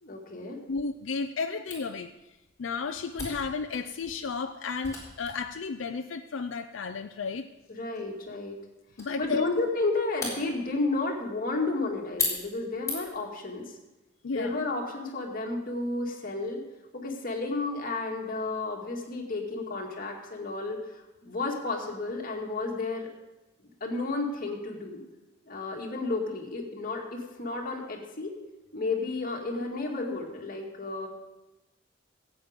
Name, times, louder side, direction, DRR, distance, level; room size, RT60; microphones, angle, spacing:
voice 1, 0.0-0.6 7.7-8.6 9.2-13.8 14.3-16.6 16.9-23.1 23.8-25.0 25.5-28.3 28.7-31.1, left 3 dB, 50° left, 0 dB, 2.2 m, -32 dB
voice 2, 0.7-2.1 2.6-7.5 9.0-9.5 14.2-14.6, left 4 dB, 85° left, 6 dB, 0.5 m, -33 dB
Camera, 1.7-13.3, left 3 dB, 15° left, 4.3 m, -40 dB
15.0 x 8.6 x 5.1 m, 1.0 s
head